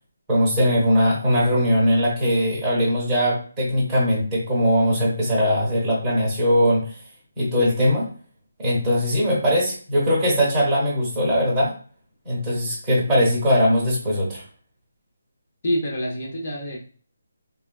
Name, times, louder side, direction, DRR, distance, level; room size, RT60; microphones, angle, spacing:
voice 1, 0.3-7.0 7.4-8.1 8.6-11.7 12.2-14.4, equal, 10° right, -6 dB, 0.9 m, -20 dB
voice 2, 15.6-16.8, equal, 30° left, -2 dB, 0.6 m, -26 dB
3.4 x 2.2 x 2.3 m, 0.42 s
hypercardioid pair, 180°, 0 cm